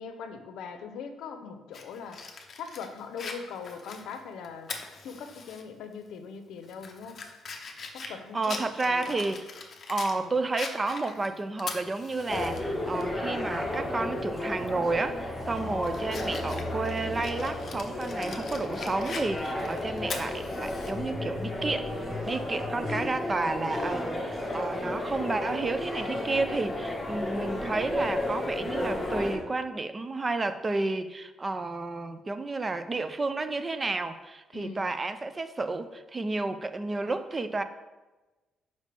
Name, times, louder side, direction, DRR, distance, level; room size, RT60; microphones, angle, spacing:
voice 1, 0.0-2.2 2.6-4.7 5.0-7.2 7.9-9.3 10.2-10.3 15.6-15.9 34.5-34.9, left 6 dB, 80° left, 7 dB, 0.7 m, -41 dB
Fire, 1.7-5.6 6.0-6.1 6.6-10.2 10.6-12.6 13.0-13.1 14.6-14.8 15.3-20.9, left 4 dB, 35° left, 0.7 m, -41 dB
voice 2, 8.0-9.5 9.9-22.0 22.3-37.6, right 3 dB, 20° right, 10 dB, 0.3 m, -31 dB
sound 1, 12.3-29.4, left 1 dB, 10° left, 1.4 m, -33 dB
sound 2, 19.3-23.4 24.1-24.2, left 3 dB, 40° right, 1.7 m, -42 dB
6.6 x 5.3 x 3.3 m, 1.1 s
cardioid pair, 155°, 0 cm